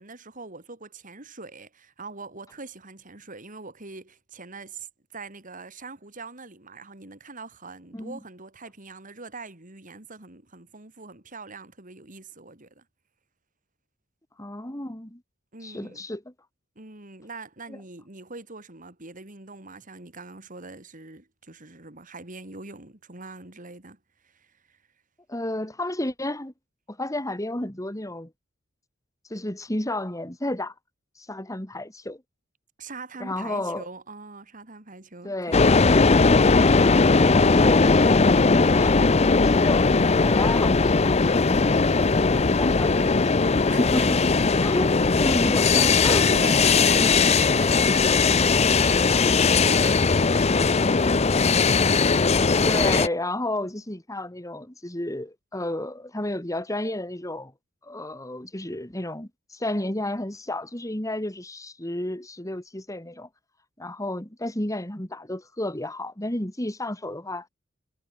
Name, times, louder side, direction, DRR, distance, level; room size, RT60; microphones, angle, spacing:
voice 1, 0.0-12.8 15.5-16.1 16.7-24.8 32.8-35.6 43.7-44.1 46.3-51.6, right 3 dB, 40° right, 3.3 m, -42 dB
voice 2, 14.4-15.2 15.6-16.2 17.7-17.8 25.3-26.5 26.9-28.3 29.3-30.7 31.2-32.2 33.2-33.9 35.2-35.7 37.5-43.1 43.4-44.2 44.6-46.3 47.0-47.2 52.6-57.5 57.8-63.3 63.8-67.5, left 1 dB, 15° left, 2.3 m, -32 dB
sound 1, 35.5-53.1, left 4 dB, 30° left, 0.6 m, -19 dB
head